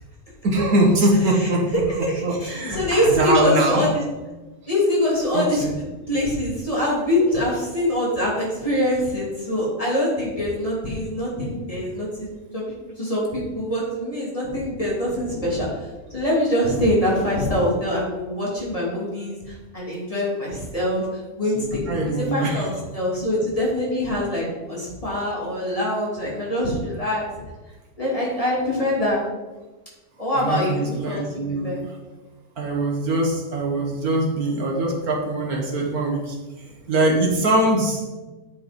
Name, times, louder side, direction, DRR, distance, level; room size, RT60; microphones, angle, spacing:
voice 1, 0.4-1.6 2.2-3.8 5.3-5.7 21.9-22.7 30.4-31.7 32.6-36.4 36.9-38.1, right 1 dB, 65° right, -1 dB, 1.9 m, -22 dB
voice 2, 2.0-4.0 4.7-5.6 6.1-12.3 12.5-12.7 13.0-27.2 28.0-29.2 30.2-31.3 31.6-31.8, left 1 dB, 20° left, -5 dB, 2.9 m, -24 dB
9.7 x 5.5 x 5.2 m, 1.2 s
omnidirectional pair, 1.7 m